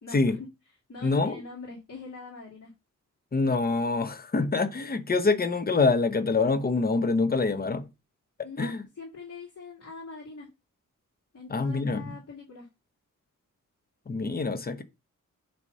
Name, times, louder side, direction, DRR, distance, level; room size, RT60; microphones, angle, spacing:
voice 1, 0.0-0.5 0.9-2.7 8.4-10.5 11.3-12.7, left 4 dB, 50° left, 2.1 m, -43 dB
voice 2, 1.0-1.4 3.3-7.9 8.6-8.8 11.5-12.1 14.1-14.8, left 3 dB, 30° left, 0.8 m, -25 dB
7.8 x 2.8 x 5.4 m
wide cardioid pair, 155°, 32 cm